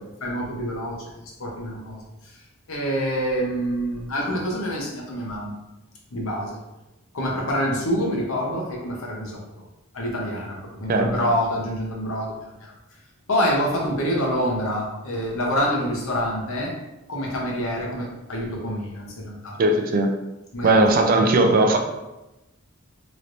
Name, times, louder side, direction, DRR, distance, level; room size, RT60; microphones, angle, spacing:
voice 1, 0.2-1.0 1.4-2.0 2.7-5.5 6.1-6.6 7.1-9.4 9.9-12.3 12.6-12.7 13.3-16.7 17.1-19.6 20.5-21.0, equal, 70° left, -2 dB, 0.9 m, -26 dB
voice 2, 19.6-20.1 20.6-21.8, right 2 dB, 40° right, 4 dB, 0.4 m, -18 dB
3.1 x 2.9 x 2.5 m, 0.98 s
head